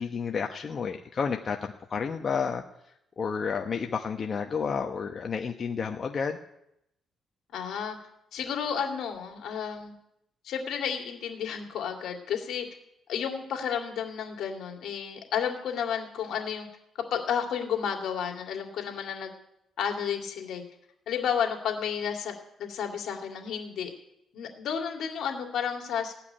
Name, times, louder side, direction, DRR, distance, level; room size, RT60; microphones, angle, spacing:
voice 1, 0.0-2.6 3.2-6.4, left 6 dB, 45° left, 3 dB, 1.0 m, -31 dB
voice 2, 7.5-8.0 8.3-9.9 10.4-12.6 13.1-16.7 17.1-19.3 19.8-20.6 21.1-22.3 22.6-23.9 24.3-26.1, left 7 dB, 75° left, 2 dB, 2.6 m, -31 dB
17.0 x 5.9 x 9.9 m, 0.81 s
cardioid pair, 90°, 0 cm